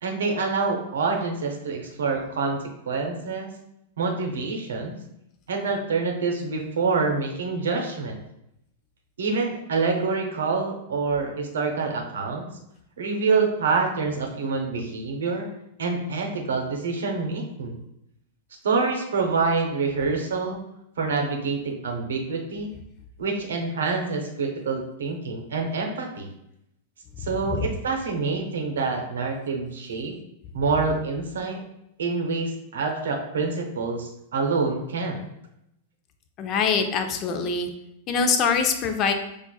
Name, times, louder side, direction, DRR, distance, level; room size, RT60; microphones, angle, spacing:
voice 1, 0.0-3.5 4.0-5.0 5.5-8.2 9.2-12.5 13.0-15.5 15.8-17.8 18.6-20.6 21.0-22.7 23.2-26.3 27.2-30.2 30.5-31.6 32.0-35.3, right 4 dB, 75° right, 3 dB, 0.7 m, -26 dB
voice 2, 36.4-37.7 38.1-39.1, left 5 dB, 40° left, 6 dB, 0.4 m, -23 dB
4.5 x 2.4 x 2.3 m, 0.80 s
hypercardioid pair, 100°, 0 cm